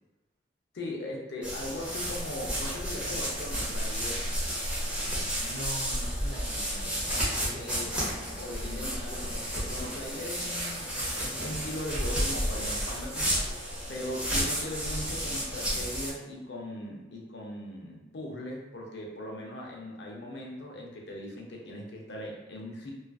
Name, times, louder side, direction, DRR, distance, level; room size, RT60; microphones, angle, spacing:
voice 1, 0.7-4.3 7.6-8.0 8.4-13.3 13.9-22.9, left 1 dB, 60° left, -1 dB, 0.5 m, -39 dB
sound 1, 1.4-16.1, equal, 5° right, 0.6 m, -32 dB
voice 2, 5.4-7.0 7.4-7.8, right 1 dB, 45° right, -5 dB, 0.6 m, -42 dB
2.4 x 2.3 x 2.3 m, 1.1 s
head